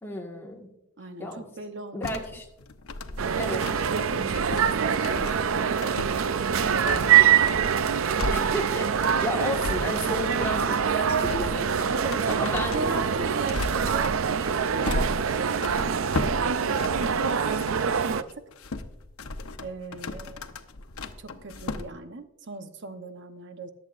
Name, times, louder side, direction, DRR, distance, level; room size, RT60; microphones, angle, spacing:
voice 1, 0.0-0.7 1.2-1.4 1.9-2.5 3.1-3.6 8.3-12.7, left 1 dB, 10° left, -1 dB, 1.6 m, -34 dB
voice 2, 1.0-2.2 3.2-5.7 6.6-7.8 11.9-14.2 14.5-18.2 19.6-20.5 21.2-23.7, right 3 dB, 55° right, 8 dB, 0.9 m, -38 dB
sound 1, 2.0-17.9 18.3-21.9, left 2 dB, 85° left, 0.8 m, -36 dB
sound 2, 3.2-18.2, right 7 dB, 70° right, 0.5 m, -24 dB
22.0 x 8.0 x 2.5 m, 0.87 s
head